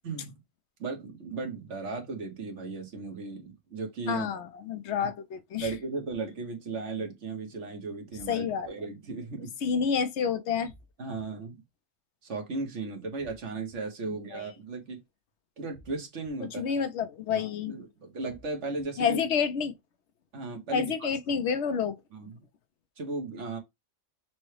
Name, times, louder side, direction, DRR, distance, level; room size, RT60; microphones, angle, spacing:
voice 1, 0.0-0.4 0.8-4.3 5.0-5.1 5.6-9.5 11.0-11.6 12.2-15.0 15.6-16.6 17.3-19.2 20.3-21.1 22.1-22.4 23.0-23.6, right 3 dB, 65° right, 1.4 m, -36 dB
voice 2, 4.1-5.7 8.3-8.7 9.6-10.7 14.1-14.4 16.4-17.7 19.0-19.7 20.7-22.0, left 6 dB, 65° left, 0.9 m, -29 dB
sound 1, 5.6-6.2 8.1-8.7 10.6-11.2 13.2-13.8 15.7-16.3 18.3-18.8, right 2 dB, 90° left, 2.2 m, -55 dB
6.0 x 2.2 x 3.2 m
omnidirectional pair, 1.3 m